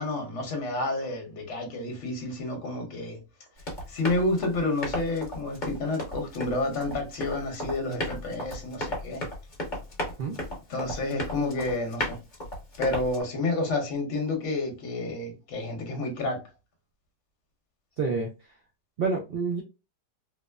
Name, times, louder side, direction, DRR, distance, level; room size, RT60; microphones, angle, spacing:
voice 1, 0.0-3.2 3.9-9.2 10.7-12.2 12.8-16.4, left 2 dB, 55° left, 1.2 m, -30 dB
Run, 3.6-13.2, left 1 dB, 35° left, 1.0 m, -35 dB
voice 2, 18.0-18.3 19.0-19.6, right 4 dB, 85° right, 0.5 m, -28 dB
3.1 x 2.0 x 2.2 m
omnidirectional pair, 1.7 m